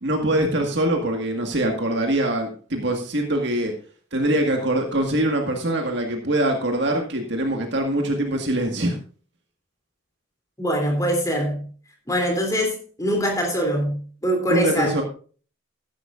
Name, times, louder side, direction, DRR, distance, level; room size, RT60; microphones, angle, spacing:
voice 1, 0.0-3.7 4.1-9.0 14.5-15.0, right 1 dB, 55° right, 1.8 m, -23 dB
voice 2, 10.6-11.7 12.1-15.0, equal, 15° left, 3.2 m, -23 dB
14.0 x 11.5 x 2.5 m
head